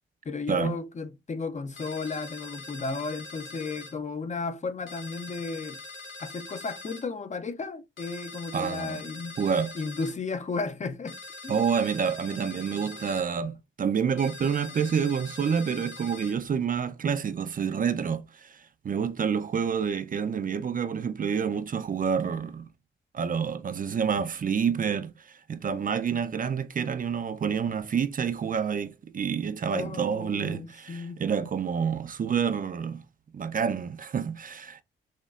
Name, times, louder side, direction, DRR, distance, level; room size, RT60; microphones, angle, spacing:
voice 1, 0.2-5.8 6.2-9.3 9.7-11.2 11.4-11.6 29.7-31.2, left 4 dB, 35° left, 0.6 m, -34 dB
sound 1, 1.8-4.0 4.9-7.1 8.0-10.2 11.1-13.3 14.2-16.4, left 2 dB, 60° left, 2.2 m, -43 dB
voice 2, 8.5-9.0 9.4-9.7 11.5-22.7 23.1-33.0 33.3-34.8, right 7 dB, 40° right, 0.5 m, -28 dB
6.4 x 3.0 x 2.4 m
cardioid pair, 90°, 21 cm